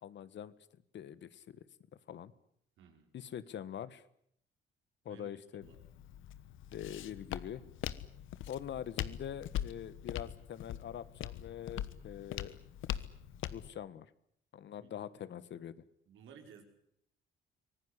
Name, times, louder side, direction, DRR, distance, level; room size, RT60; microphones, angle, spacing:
voice 1, 0.0-0.5 0.9-1.6 2.1-2.3 3.1-4.0 5.0-5.7 6.7-7.6 8.5-12.6 13.5-14.1 14.5-15.8, left 9 dB, 65° left, 15 dB, 1.5 m, -44 dB
voice 2, 2.8-3.1 5.1-5.8 14.8-15.0 16.1-16.6, right 7 dB, 80° right, 4 dB, 5.2 m, -57 dB
Walk footsteps, 5.6-13.7, left 11 dB, 85° left, 1.3 m, -42 dB
25.0 x 18.5 x 9.9 m, 0.70 s
cardioid pair, 90°, 20 cm